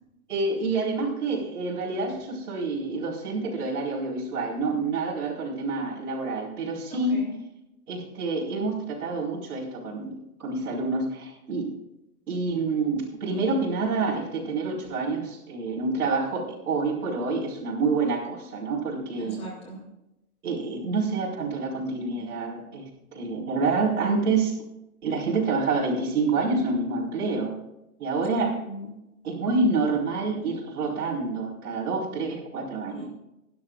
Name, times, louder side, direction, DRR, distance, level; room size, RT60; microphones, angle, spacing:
voice 1, 0.3-7.2 7.9-10.1 10.4-11.7 12.3-19.4 20.4-24.5 25.0-27.6 28.0-28.5 29.2-33.1, right 3 dB, 85° right, -6 dB, 4.5 m, -27 dB
voice 2, 6.9-7.3 13.3-13.6 19.2-19.8 28.3-28.9 33.0-33.1, equal, 15° left, -3 dB, 3.3 m, -39 dB
23.5 x 11.5 x 2.5 m, 0.88 s
hypercardioid pair, 175°, 43 cm